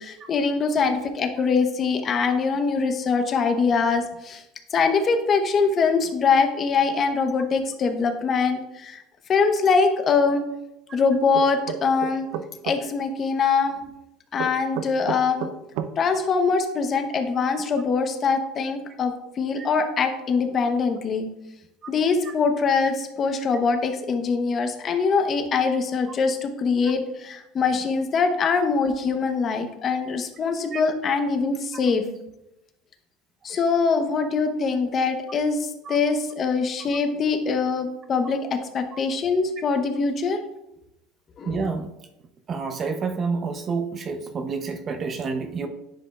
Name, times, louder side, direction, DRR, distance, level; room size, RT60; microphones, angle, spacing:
voice 1, 0.0-4.4 4.7-9.0 9.3-10.4 10.9-12.3 12.6-13.8 14.3-15.5 16.0-21.3 21.9-32.0 33.4-40.4 41.4-41.6, left 5 dB, 35° left, 7 dB, 0.9 m, -23 dB
sound 1, 11.3-12.8 14.4-15.9, right 9 dB, 75° right, 0.5 m, -31 dB
voice 2, 41.4-41.9 42.5-45.7, right 4 dB, 35° right, 7 dB, 0.7 m, -29 dB
10.0 x 5.2 x 2.4 m, 0.89 s
supercardioid pair, 115°, 0 cm